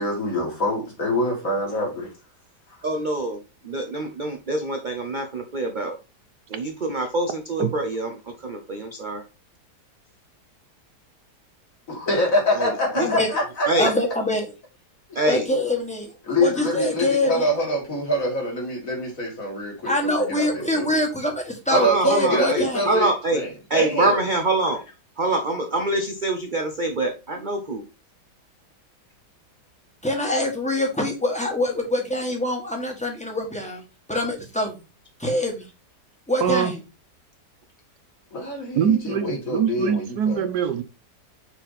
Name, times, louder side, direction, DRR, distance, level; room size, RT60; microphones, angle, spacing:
voice 1, 0.0-2.1 11.9-13.7 16.3-21.0 21.7-24.2 38.3-40.4, left 1 dB, 50° left, 2.7 m, -25 dB
voice 2, 2.8-6.0 6.5-9.2 12.5-12.7 12.9-13.1 13.7-13.9 15.1-15.5 21.7-23.4 23.7-24.9 25.2-27.8, right 2 dB, 40° right, 0.7 m, -25 dB
voice 3, 13.8-14.5 15.2-16.1 16.4-17.4 19.8-22.8 30.0-33.8 34.1-34.8 35.2-35.6 36.3-36.8, left 1 dB, 5° left, 1.5 m, -24 dB
voice 4, 36.4-36.7 38.7-40.8, right 8 dB, 70° right, 1.2 m, -23 dB
6.0 x 4.4 x 4.0 m
omnidirectional pair, 1.8 m